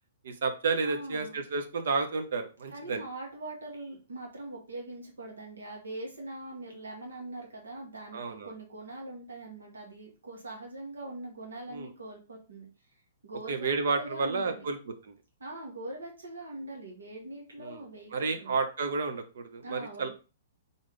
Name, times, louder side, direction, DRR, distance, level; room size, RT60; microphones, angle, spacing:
voice 1, 0.2-3.0 8.1-8.5 11.7-11.9 13.5-15.1 17.6-17.8 18.1-20.1, right 4 dB, 65° right, 7 dB, 0.9 m, -31 dB
voice 2, 0.8-1.4 2.7-12.7 13.2-14.7 15.4-18.6 19.6-20.1, right 2 dB, 85° right, 0 dB, 1.8 m, -42 dB
4.0 x 3.7 x 3.4 m, 0.33 s
hypercardioid pair, 125°, 0 cm